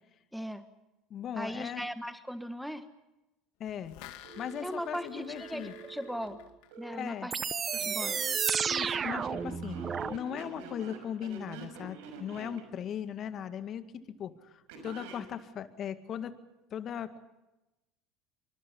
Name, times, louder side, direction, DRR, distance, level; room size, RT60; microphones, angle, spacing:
voice 1, 0.3-0.6 1.4-2.9 4.6-6.4 6.8-7.4 7.7-8.2, equal, ahead, 10 dB, 1.5 m, -38 dB
voice 2, 1.1-1.9 3.6-3.9 4.4-5.7 6.9-7.3 8.7-16.4 16.7-17.2, left 8 dB, 45° left, 10 dB, 2.1 m, -38 dB
sound 1, 3.7-7.2 7.5-7.6, left 13 dB, 65° left, 2.1 m, -52 dB
Telephone, 4.2-7.0 7.7-8.3 8.9-12.6 14.7-15.2, right 4 dB, 70° right, 5.9 m, -47 dB
sound 2, 7.3-10.2, right 6 dB, 35° right, 1.0 m, -31 dB
27.5 x 25.0 x 5.6 m, 0.98 s
hypercardioid pair, 75°, 0 cm